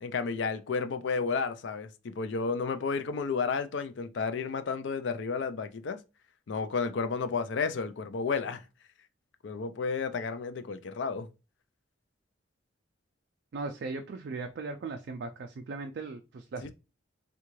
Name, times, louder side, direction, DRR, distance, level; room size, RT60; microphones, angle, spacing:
voice 1, 0.0-6.0 6.5-8.6 9.4-11.3 16.6-16.7, left 5 dB, 70° left, 0.4 m, -32 dB
voice 2, 13.5-16.7, right 3 dB, 60° right, 0.3 m, -38 dB
3.6 x 2.3 x 3.0 m
head